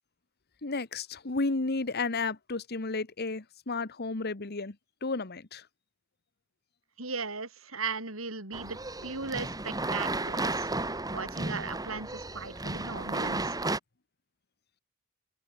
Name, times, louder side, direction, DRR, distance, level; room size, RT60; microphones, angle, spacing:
voice 1, 0.6-4.7 5.0-5.6, left 3 dB, 50° left, 1.3 m, -32 dB
voice 2, 7.0-10.7 11.1-13.6, right 4 dB, 70° right, 6.9 m, -37 dB
sound 1, 8.5-13.8, right 2 dB, 20° right, 3.8 m, -33 dB
open air
head